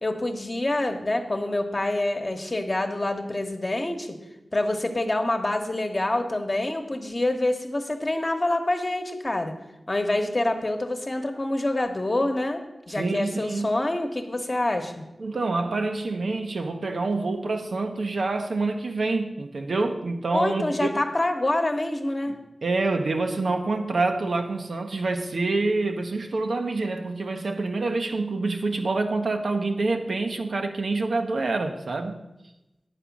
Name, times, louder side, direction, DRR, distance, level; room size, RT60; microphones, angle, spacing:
voice 1, 0.0-4.2 4.5-9.5 9.9-12.6 12.9-15.0 20.3-22.4, left 1 dB, 35° left, 1.1 m, -26 dB
voice 2, 12.9-13.8 15.2-20.9 22.3-22.4 22.6-32.2, right 3 dB, 80° right, 0.9 m, -27 dB
9.8 x 5.0 x 7.2 m
wide cardioid pair, 75°, 0 cm